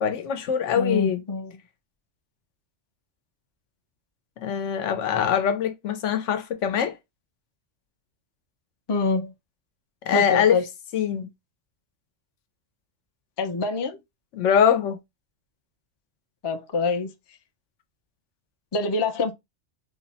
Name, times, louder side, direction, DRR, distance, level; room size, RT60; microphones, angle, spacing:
voice 1, 0.0-1.2 4.4-7.0 10.1-10.6 10.9-11.3 14.3-15.0, left 8 dB, 85° left, 1.0 m, -23 dB
voice 2, 0.8-1.6 8.9-9.3 10.1-10.7 13.4-14.0 16.4-17.1 18.7-19.3, left 3 dB, 40° left, 0.3 m, -25 dB
3.6 x 2.0 x 4.0 m
omnidirectional pair, 1.2 m